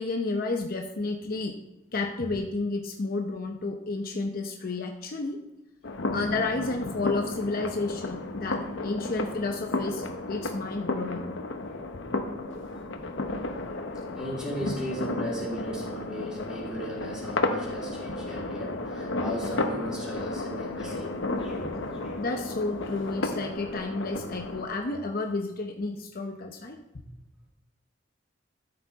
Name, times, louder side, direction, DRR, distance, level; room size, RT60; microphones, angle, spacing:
voice 1, 0.0-1.6 1.9-5.4 6.1-11.3 11.9-12.0 22.2-27.0, left 3 dB, 50° left, 3 dB, 0.7 m, -31 dB
sound 1, 5.8-24.6, left 2 dB, 85° left, 0.9 m, -33 dB
voice 2, 14.1-21.7 22.0-22.2, equal, 5° right, -6 dB, 3.6 m, -36 dB
13.0 x 6.9 x 4.0 m, 0.95 s
head